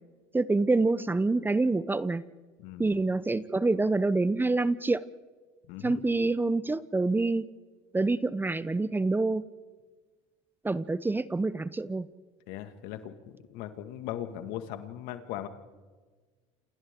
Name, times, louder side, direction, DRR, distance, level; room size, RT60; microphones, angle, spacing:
voice 1, 0.3-2.2 2.8-5.0 5.8-7.5 7.9-9.4 10.6-12.1, right 3 dB, 15° right, 16 dB, 0.8 m, -26 dB
voice 2, 2.6-2.9 5.7-6.0 12.5-15.5, left 11 dB, 70° left, 8 dB, 1.9 m, -39 dB
29.0 x 28.0 x 3.8 m, 1.4 s
supercardioid pair, 90°, 15 cm